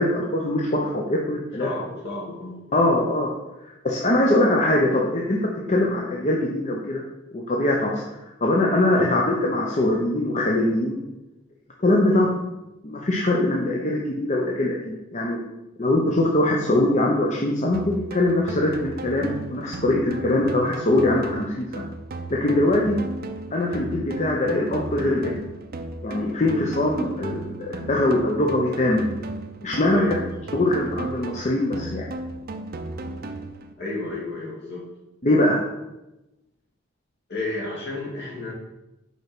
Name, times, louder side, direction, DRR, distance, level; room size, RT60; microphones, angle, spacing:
voice 1, 0.0-1.7 2.7-3.3 3.6-5.4 5.7-7.0 7.3-11.0 11.8-12.3 12.8-15.4 15.8-21.8 22.3-23.0 23.5-25.3 26.0-29.1 29.6-30.0 30.5-32.1 35.2-35.6, left 1 dB, 35° left, -2 dB, 0.8 m, -22 dB
voice 2, 1.6-2.8 5.6-5.8 9.0-9.1 12.0-12.4 29.9-30.2 33.8-34.9 37.3-38.5, left 2 dB, 60° left, -4 dB, 2.5 m, -32 dB
sound 1, 17.7-33.7, right 2 dB, 50° right, 0.6 m, -35 dB
5.5 x 4.6 x 6.1 m, 0.97 s
head